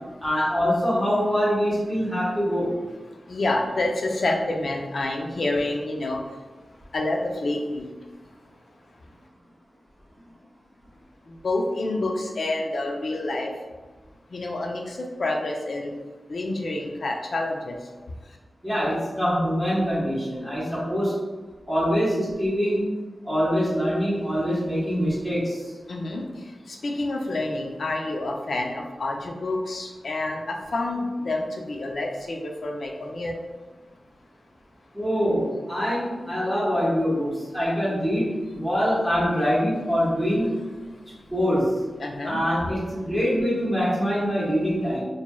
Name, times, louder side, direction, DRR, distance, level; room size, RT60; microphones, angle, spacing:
voice 1, 0.2-2.7 18.6-21.1 21.7-22.9 23.2-25.6 34.9-40.6 41.3-41.7 42.2-45.0, equal, ahead, -10 dB, 1.3 m, -24 dB
voice 2, 3.3-6.2 6.9-7.9 11.3-13.5 14.3-15.9 16.3-17.7 25.9-26.2 26.7-33.3 42.0-42.4, left 2 dB, 70° left, 1 dB, 0.5 m, -28 dB
4.6 x 2.8 x 2.3 m, 1.3 s
wide cardioid pair, 100°, 0 cm